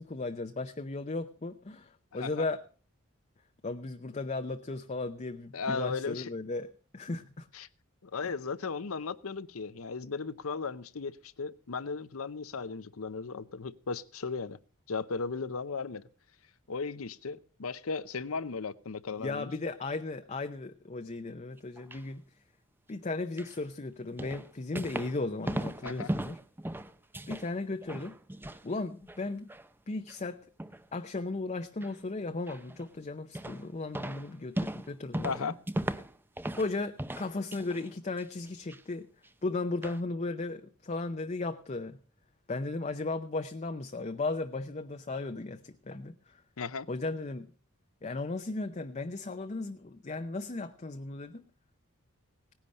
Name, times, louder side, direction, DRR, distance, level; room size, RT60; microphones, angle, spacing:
voice 1, 0.0-2.6 3.6-7.5 8.2-8.3 19.2-22.2 22.9-26.4 27.3-28.2 28.6-29.5 29.9-30.4 30.9-35.5 36.6-39.1 39.4-42.0 42.5-46.4 46.9-47.5 48.0-51.4, left 3 dB, 30° left, 7 dB, 0.6 m, -36 dB
voice 2, 2.1-2.5 5.5-6.2 7.5-7.7 8.0-14.6 14.9-16.1 16.7-19.5 25.8-26.1 35.2-35.6 46.6-46.9, left 4 dB, 75° left, 15 dB, 0.8 m, -36 dB
sound 1, 21.6-22.0 23.4-23.6 24.2-25.2 25.4-27.5 27.8-28.6 29.0-29.7 30.1-30.2 30.6-30.9 31.8-31.9 32.5-32.9 33.3-33.7 33.9-36.7 37.0-37.9 38.2-38.8 39.2-39.3 39.8-40.0, right 1 dB, 10° right, 0.6 m, -37 dB
17.5 x 10.5 x 5.4 m, 0.39 s
head